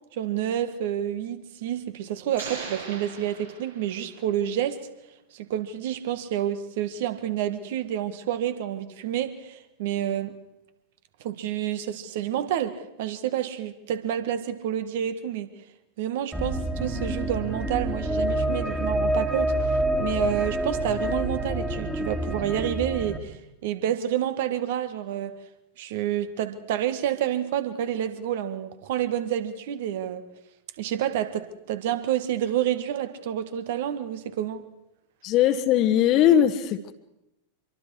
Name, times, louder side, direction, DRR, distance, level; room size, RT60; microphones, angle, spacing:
voice 1, 0.1-4.9 5.3-10.4 11.2-15.5 16.0-25.4 25.8-30.2 30.8-34.6, right 11 dB, 55° right, 1.7 m, -29 dB
sound 1, 2.4-4.2, right 4 dB, 80° right, 7.7 m, -39 dB
sound 2, 16.3-23.2, right 1 dB, 5° right, 2.2 m, -27 dB
voice 2, 35.2-36.9, left 10 dB, 40° left, 1.4 m, -20 dB
26.0 x 23.5 x 4.9 m
figure-of-eight pair, 90°, 0 cm